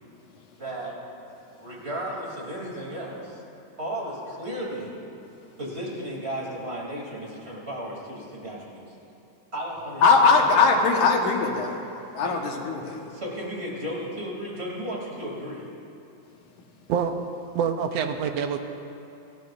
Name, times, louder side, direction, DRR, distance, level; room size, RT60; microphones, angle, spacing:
voice 1, 0.6-1.0 1.6-3.4 3.8-4.9 5.6-8.8 9.5-10.6 12.2-12.5 12.8-15.6, equal, 20° right, -3 dB, 2.9 m, -34 dB
voice 2, 10.0-11.8 12.1-13.0, left 4 dB, 85° left, 1 dB, 2.8 m, -20 dB
voice 3, 17.6-18.6, right 7 dB, 75° right, 6 dB, 1.7 m, -26 dB
28.5 x 13.5 x 2.6 m, 2.8 s
omnidirectional pair, 3.4 m